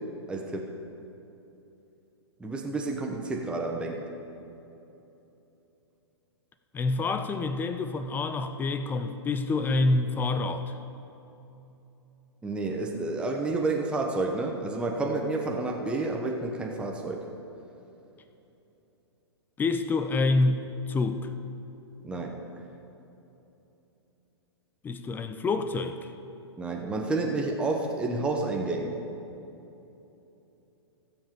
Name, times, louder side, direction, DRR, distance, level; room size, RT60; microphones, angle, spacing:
voice 1, 0.3-0.7 2.4-4.1 12.4-17.3 22.0-22.4 26.6-29.0, right 3 dB, 5° right, 0 dB, 1.0 m, -30 dB
voice 2, 6.7-10.7 19.6-21.2 24.8-26.0, left 3 dB, 15° left, 9 dB, 0.5 m, -27 dB
15.5 x 7.4 x 5.2 m, 3.0 s
figure-of-eight pair, 115°, 15 cm